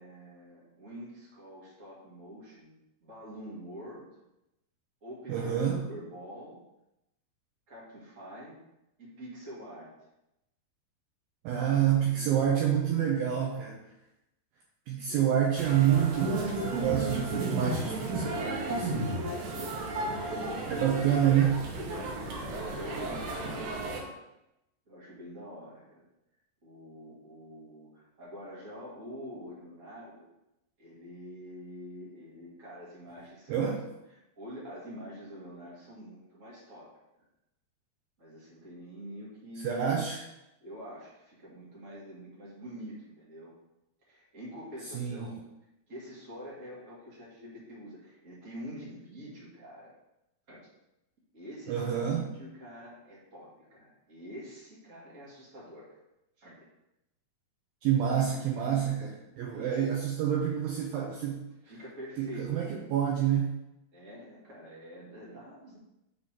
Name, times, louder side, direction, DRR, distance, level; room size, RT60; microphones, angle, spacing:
voice 1, 0.0-2.7 3.0-4.1 5.0-6.6 7.7-8.6 9.0-9.9 11.7-12.4 15.1-15.3 17.6-17.7 20.1-21.2 21.9-24.2 24.9-26.0 26.6-30.3 30.8-33.6 34.4-36.9 38.2-40.0 40.6-43.5 44.0-45.4 45.9-49.9 50.5-50.7 51.3-55.9 56.4-56.6 59.4-59.7 61.6-62.7 63.9-65.8, equal, 40° right, -7 dB, 1.0 m, -46 dB
voice 2, 5.3-5.8 11.4-13.8 14.9-18.9 20.7-21.6 33.5-33.8 39.6-40.2 44.9-45.4 51.7-52.2 57.8-61.5 62.2-63.6, right 9 dB, 90° right, -1 dB, 2.1 m, -28 dB
sound 1, 15.6-24.0, right 2 dB, 70° right, 2.2 m, -33 dB
6.6 x 3.6 x 5.9 m, 0.90 s
omnidirectional pair, 4.9 m